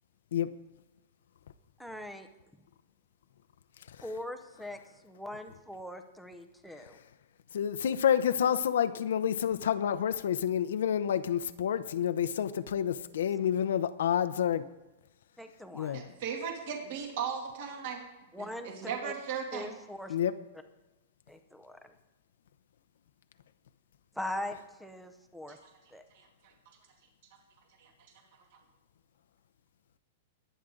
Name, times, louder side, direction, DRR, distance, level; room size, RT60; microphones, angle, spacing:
voice 1, 1.8-2.3 4.0-7.0 15.4-16.1 18.3-18.7 19.0-19.1 19.5-20.1 21.3-21.9 24.1-25.6 25.9-26.0, left 1 dB, ahead, 8 dB, 0.7 m, -41 dB
voice 2, 7.5-14.6 15.7-16.0 20.1-20.3, left 9 dB, 75° left, 10 dB, 0.7 m, -29 dB
voice 3, 15.9-18.0 18.4-19.7 26.1-26.5 27.8-27.9, right 7 dB, 45° right, 2 dB, 2.5 m, -37 dB
22.0 x 9.3 x 3.8 m, 1.1 s
supercardioid pair, 180°, 0 cm